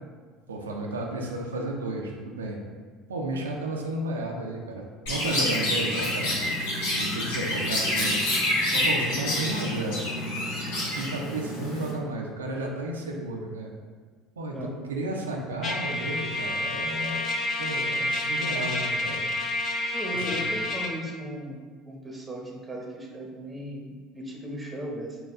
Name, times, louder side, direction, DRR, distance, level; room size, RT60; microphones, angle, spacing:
voice 1, 0.5-2.6 3.1-6.4 6.9-8.2 8.7-10.1 10.9-13.7 14.4-17.2 17.6-19.3 20.1-20.4, right 2 dB, 90° right, 0 dB, 0.4 m, -33 dB
Chirp tweet, 5.1-11.9, left 1 dB, 75° left, 1.3 m, -27 dB
Trumpet, 15.6-21.0, left 1 dB, 45° left, 0.5 m, -29 dB
voice 2, 19.9-25.2, equal, 15° right, -1 dB, 0.9 m, -37 dB
4.2 x 2.2 x 3.6 m, 1.5 s
hypercardioid pair, 70°, 0 cm